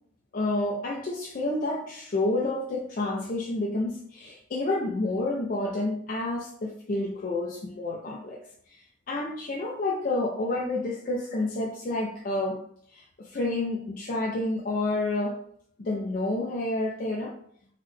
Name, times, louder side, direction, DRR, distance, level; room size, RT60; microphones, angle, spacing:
voice 1, 0.3-8.4 8.7-12.6 12.9-15.4 15.8-17.3, left 2 dB, 45° left, -1 dB, 0.4 m, -29 dB
3.9 x 2.1 x 3.1 m, 0.63 s
head